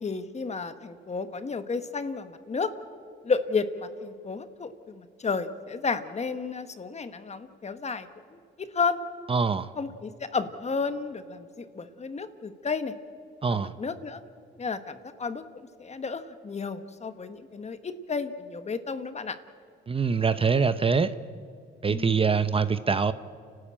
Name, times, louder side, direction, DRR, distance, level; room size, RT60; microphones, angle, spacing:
voice 1, 0.0-2.7 3.2-9.0 9.8-12.9 13.5-14.2 14.6-19.4 21.9-22.2, left 4 dB, 35° left, 11 dB, 1.4 m, -32 dB
voice 2, 9.3-9.7 13.4-13.7 19.9-21.1 21.8-23.1, right 5 dB, 30° right, 13 dB, 0.8 m, -24 dB
30.0 x 13.0 x 8.7 m, 2.2 s
cardioid pair, 90°, 20 cm